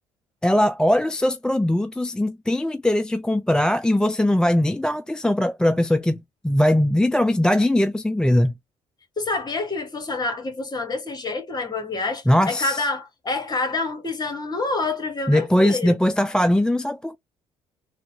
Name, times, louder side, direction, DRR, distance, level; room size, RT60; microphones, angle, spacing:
voice 1, 0.4-8.5 12.3-12.9 15.3-17.2, left 1 dB, 5° left, 0.3 m, -20 dB
voice 2, 9.2-16.0, left 3 dB, 30° left, 1.6 m, -27 dB
3.7 x 2.3 x 2.8 m
hypercardioid pair, 60°, 15 cm